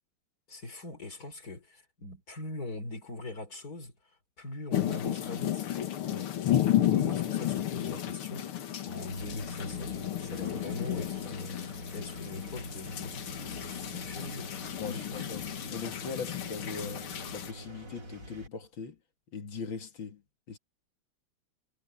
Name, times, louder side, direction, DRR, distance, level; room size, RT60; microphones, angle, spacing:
voice 1, 0.5-5.7 6.8-14.5 14.9-15.3, left 2 dB, 45° left, 4.3 m, -42 dB
sound 1, 4.7-17.5, left 12 dB, 85° left, 2.2 m, -33 dB
Engine, 9.1-18.5, equal, 55° right, 4.0 m, -45 dB
voice 2, 14.8-19.0 19.3-20.2 20.5-20.6, left 5 dB, 65° left, 2.9 m, -40 dB
omnidirectional pair, 2.3 m